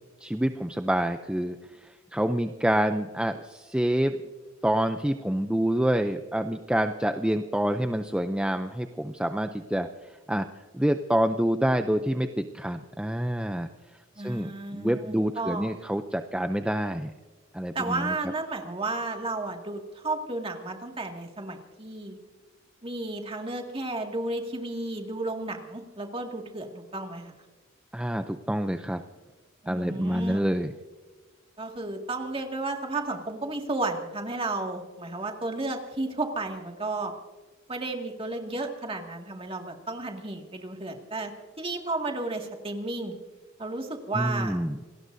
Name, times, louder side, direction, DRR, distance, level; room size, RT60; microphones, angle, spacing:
voice 1, 0.2-4.2 4.6-9.9 10.3-10.4 10.7-13.7 14.2-17.1 17.5-18.2 27.9-29.0 29.7-30.7 44.1-44.8, right 1 dB, 5° right, 7 dB, 0.5 m, -27 dB
voice 2, 14.2-15.7 17.7-22.2 22.8-27.3 29.6-30.4 31.6-37.1 37.7-41.3 41.6-43.1 43.6-44.6, right 2 dB, 30° right, 2 dB, 2.1 m, -33 dB
27.5 x 19.0 x 2.7 m, 1.3 s
head